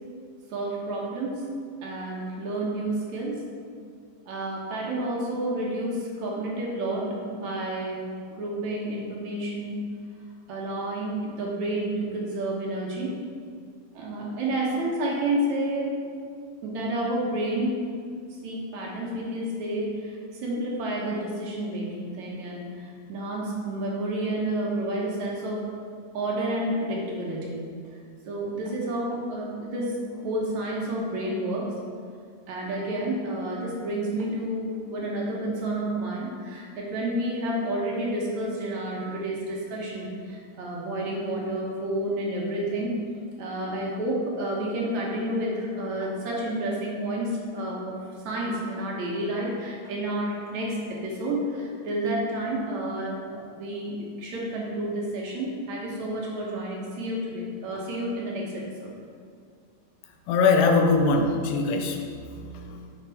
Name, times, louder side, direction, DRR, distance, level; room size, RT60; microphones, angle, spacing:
voice 1, 0.5-1.4 1.8-3.4 4.3-8.0 8.3-9.8 10.5-13.1 13.9-15.9 16.6-17.9 18.4-25.6 26.1-27.6 28.3-31.7 32.5-43.0 43.4-58.9, right 1 dB, 65° right, -3 dB, 2.3 m, -30 dB
voice 2, 60.3-63.0, left 4 dB, 85° left, 4 dB, 2.4 m, -23 dB
7.9 x 6.2 x 4.1 m, 2.2 s
omnidirectional pair, 3.9 m